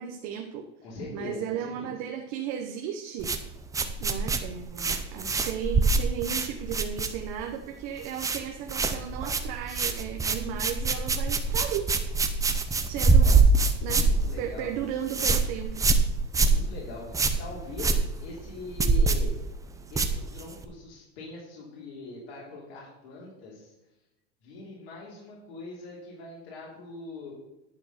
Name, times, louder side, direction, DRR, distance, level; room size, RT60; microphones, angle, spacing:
voice 1, 0.0-0.7 1.1-3.3 4.0-11.9 12.9-13.3 13.8-14.0 14.4-15.8, right 9 dB, 50° right, 4 dB, 1.0 m, -35 dB
voice 2, 0.8-1.9 13.1-13.5 13.9-14.7 16.4-19.3 19.9-23.7 24.4-27.3, left 2 dB, 75° left, -6 dB, 3.1 m, -42 dB
sound 1, 3.2-7.5 7.8-8.4 8.7-20.6, right 3 dB, 10° right, 0.6 m, -25 dB
10.5 x 4.5 x 6.7 m, 0.97 s
supercardioid pair, 135°, 34 cm